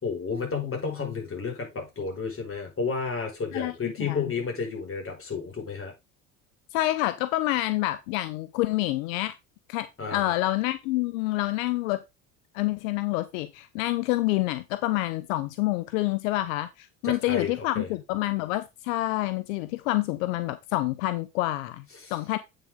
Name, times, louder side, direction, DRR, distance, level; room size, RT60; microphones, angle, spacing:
voice 1, 0.0-5.9 10.0-10.3 17.0-17.9 22.0-22.1, left 5 dB, 35° left, 5.3 m, -31 dB
voice 2, 3.5-4.3 6.7-9.3 9.7-12.0 12.5-21.8 22.1-22.4, left 17 dB, 80° left, 0.7 m, -27 dB
8.5 x 6.6 x 3.6 m
hypercardioid pair, 75°, 40 cm